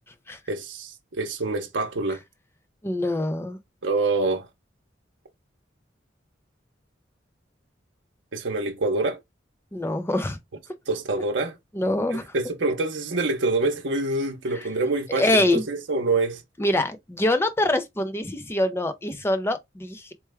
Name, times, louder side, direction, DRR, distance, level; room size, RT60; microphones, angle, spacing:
voice 1, 0.5-2.2 3.8-4.5 8.3-9.2 10.9-11.5 12.1-16.4, right 3 dB, 75° right, 0.7 m, -26 dB
voice 2, 2.8-3.6 9.7-10.4 11.7-12.3 14.5-14.7 15.2-15.6 16.6-20.1, left 1 dB, 15° left, 0.5 m, -24 dB
4.5 x 2.1 x 3.3 m
head